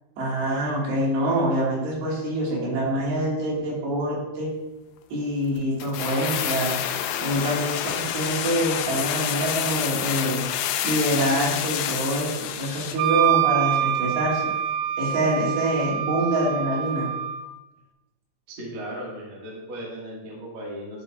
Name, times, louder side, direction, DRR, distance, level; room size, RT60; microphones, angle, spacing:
voice 1, 0.2-4.5 5.1-6.8 7.2-10.4 10.8-14.5 15.0-17.1, right 1 dB, 70° right, -5 dB, 4.2 m, -25 dB
sound 1, 5.8-13.1 13.4-13.5, left 10 dB, 80° left, 2.5 m, -28 dB
Wind instrument woodwind instrument, 13.0-17.5, right 11 dB, 85° right, 3.0 m, -25 dB
voice 2, 18.5-21.0, equal, 45° right, -4 dB, 1.9 m, -36 dB
12.0 x 7.0 x 2.5 m, 1.0 s
omnidirectional pair, 5.2 m